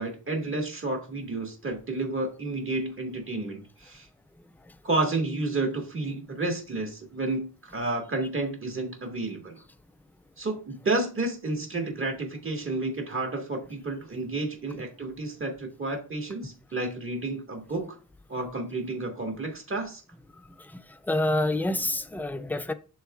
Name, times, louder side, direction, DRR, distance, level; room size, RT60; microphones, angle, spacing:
voice 1, 0.0-4.1 4.8-9.6 10.4-18.0 18.3-20.0, right 2 dB, 30° right, 1.6 m, -31 dB
voice 2, 20.6-22.7, left 1 dB, 5° left, 0.3 m, -28 dB
11.0 x 4.0 x 2.3 m
wide cardioid pair, 145°, 40 cm